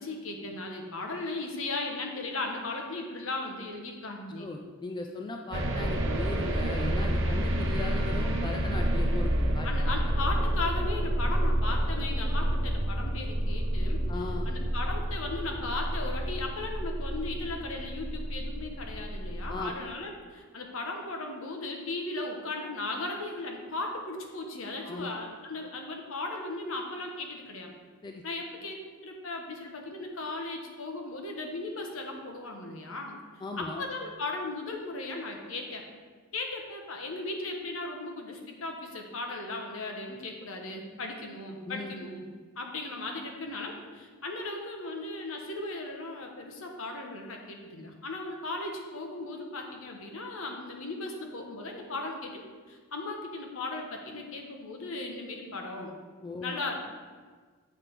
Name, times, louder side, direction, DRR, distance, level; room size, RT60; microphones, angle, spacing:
voice 1, 0.0-4.5 9.6-14.0 14.5-27.7 28.2-33.2 33.6-35.8 36.3-42.2 42.6-52.4 52.7-55.9 56.4-56.8, left 2 dB, 65° left, 2 dB, 1.0 m, -37 dB
voice 2, 4.4-9.9 14.1-14.5 19.5-19.7 24.8-25.1 28.0-28.2 33.4-33.8 41.7-41.9 56.2-56.6, left 3 dB, 20° left, 2 dB, 0.4 m, -38 dB
sound 1, 5.5-19.6, right 1 dB, 60° right, 0.8 m, -29 dB
7.5 x 3.4 x 5.9 m, 1.5 s
head